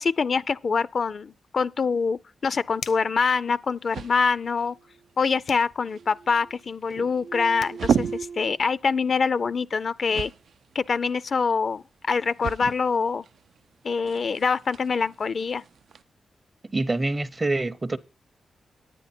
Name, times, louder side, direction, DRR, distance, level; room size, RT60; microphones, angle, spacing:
voice 1, 0.0-4.8 5.2-10.3 10.7-13.2 13.8-15.6, left 5 dB, 55° left, 0.4 m, -25 dB
sound 1, 2.6-16.0, right 7 dB, 80° right, 0.4 m, -36 dB
sound 2, 2.8-3.2 5.4-5.7 7.3-7.4 7.6-7.8, left 6 dB, 85° left, 0.9 m, -39 dB
sound 3, 4.4-5.4 5.7-6.6 6.9-8.5, right 5 dB, 65° right, 0.8 m, -40 dB
voice 2, 16.7-18.0, right 2 dB, 25° right, 0.6 m, -26 dB
9.8 x 9.5 x 4.3 m
cardioid pair, 95°, 0 cm